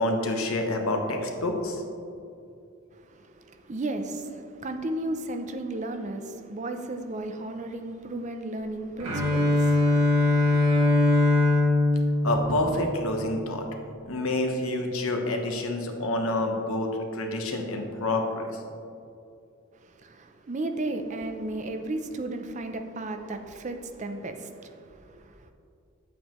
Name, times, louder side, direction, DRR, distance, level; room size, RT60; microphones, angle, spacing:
voice 1, 0.0-1.8 12.2-13.6 14.1-18.6, left 2 dB, 85° left, 3 dB, 1.1 m, -28 dB
voice 2, 2.9-11.1 19.7-25.5, right 2 dB, 35° right, 6 dB, 0.5 m, -35 dB
Bowed string instrument, 9.0-13.1, left 2 dB, 80° right, 2.0 m, -22 dB
9.1 x 8.0 x 3.1 m, 2.5 s
head